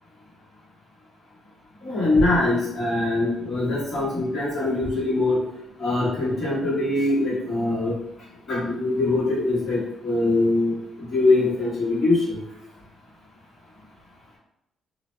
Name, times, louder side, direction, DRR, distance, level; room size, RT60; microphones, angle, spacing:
voice 1, 1.8-5.4 5.8-7.9 8.5-10.7 11.0-12.4, left 2 dB, 35° left, -10 dB, 1.5 m, -22 dB
2.7 x 2.2 x 3.1 m, 0.84 s
cardioid pair, 90°, 0 cm